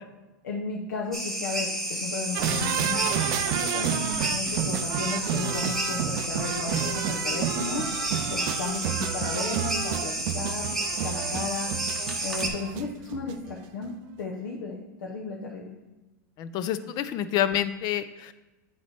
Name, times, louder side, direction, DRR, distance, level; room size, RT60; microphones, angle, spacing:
voice 1, 0.4-7.9 8.3-10.7 11.0-11.7 12.2-15.7, left 4 dB, 85° left, -2 dB, 1.0 m, -34 dB
sound 1, 1.1-12.5, right 1 dB, ahead, 1.3 m, -31 dB
sound 2, 2.3-13.5 13.8-13.9, right 12 dB, 55° right, 0.4 m, -31 dB
voice 2, 16.4-18.3, left 11 dB, 45° left, 13 dB, 0.5 m, -28 dB
8.8 x 3.3 x 4.3 m, 1.1 s
supercardioid pair, 115°, 10 cm